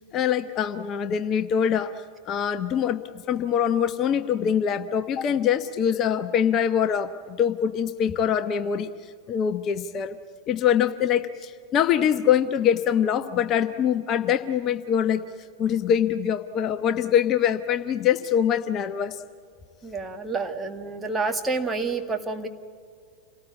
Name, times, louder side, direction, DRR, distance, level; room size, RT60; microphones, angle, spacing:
voice 1, 0.1-10.1 10.5-15.2 15.6-19.2, left 8 dB, 30° left, 10 dB, 0.9 m, -24 dB
voice 2, 19.8-22.5, right 3 dB, 15° right, 4 dB, 1.9 m, -28 dB
28.0 x 18.5 x 8.5 m, 2.1 s
figure-of-eight pair, 90°, 0 cm